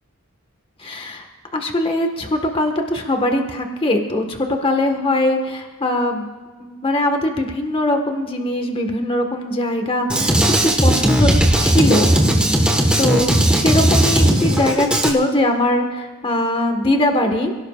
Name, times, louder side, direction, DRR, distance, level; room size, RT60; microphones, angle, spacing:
voice 1, 0.8-1.2 1.5-6.3 6.6-11.3 11.6-12.1 13.0-17.5, left 1 dB, 25° left, 4 dB, 1.5 m, -21 dB
Drum kit, 10.1-15.1, right 1 dB, 5° right, 1.4 m, -16 dB
28.0 x 17.5 x 2.5 m, 1.4 s
head